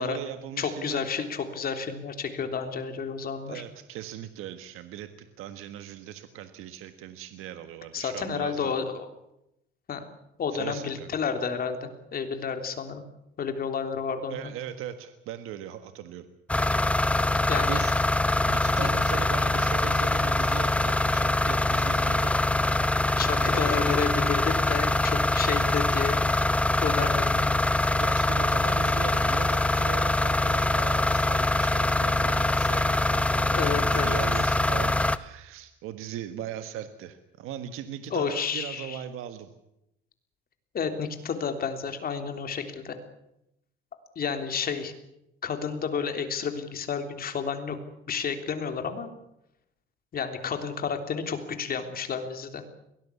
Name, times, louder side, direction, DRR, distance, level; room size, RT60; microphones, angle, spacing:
voice 1, 0.0-1.0 3.5-8.8 10.5-11.1 14.3-16.3 17.2-18.0 18.5-22.4 23.4-23.9 28.0-39.5, right 10 dB, 90° right, 9 dB, 1.6 m, -39 dB
voice 2, 0.6-3.6 7.9-9.1 9.9-10.0 10.4-13.0 13.4-14.5 17.5-17.8 23.2-26.2 26.8-27.5 33.5-34.2 38.1-39.0 40.7-43.0 44.2-44.9 45.4-47.8 48.1-49.1 50.1-52.6, left 6 dB, 45° left, 7 dB, 3.4 m, -31 dB
sound 1, 16.5-35.2, left 2 dB, 5° left, 0.8 m, -24 dB
22.5 x 19.0 x 8.4 m, 0.83 s
cardioid pair, 125°, 21 cm